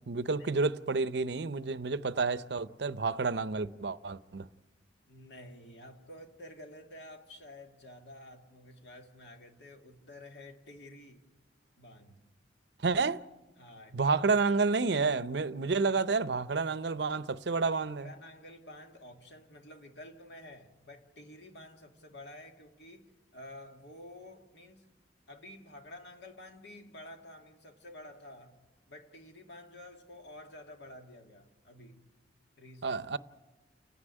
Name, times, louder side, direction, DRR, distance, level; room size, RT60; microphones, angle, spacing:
voice 1, 0.0-4.5 12.8-13.2 13.9-18.1 32.8-33.2, right 4 dB, 65° right, 0.6 m, -30 dB
voice 2, 5.1-11.2 11.8-12.2 13.6-14.2 18.0-24.9 25.3-28.6 28.9-32.1 32.6-33.0, left 1 dB, 70° left, 2.4 m, -50 dB
29.5 x 9.9 x 9.8 m
head